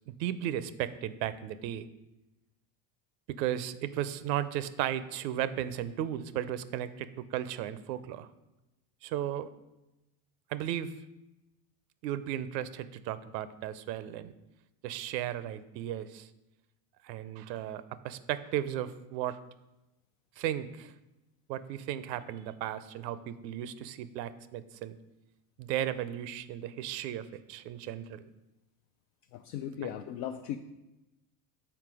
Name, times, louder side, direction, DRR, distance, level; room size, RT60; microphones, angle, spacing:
voice 1, 0.1-1.9 3.3-8.3 9.0-9.5 10.5-10.9 12.0-14.3 14.8-16.3 17.0-19.4 20.4-20.9 21.5-24.9 25.6-28.2 29.8-29.9, right 11 dB, 90° right, 14 dB, 0.6 m, -35 dB
voice 2, 29.3-30.6, left 10 dB, 75° left, 5 dB, 0.6 m, -37 dB
5.9 x 4.4 x 4.8 m, 0.98 s
supercardioid pair, 95°, 49 cm